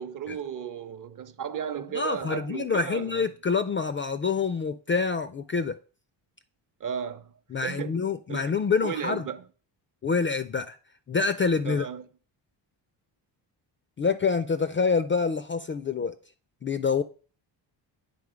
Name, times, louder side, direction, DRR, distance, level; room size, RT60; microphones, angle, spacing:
voice 1, 0.0-3.3 6.8-8.0 8.3-8.5 8.8-9.4 11.6-12.0, right 8 dB, 45° right, 0.7 m, -35 dB
voice 2, 1.9-5.8 7.5-9.3 10.0-10.8 11.1-11.9 14.0-16.1 16.6-17.0, left 5 dB, 30° left, 0.4 m, -26 dB
8.5 x 3.7 x 4.9 m
cardioid pair, 100°, 46 cm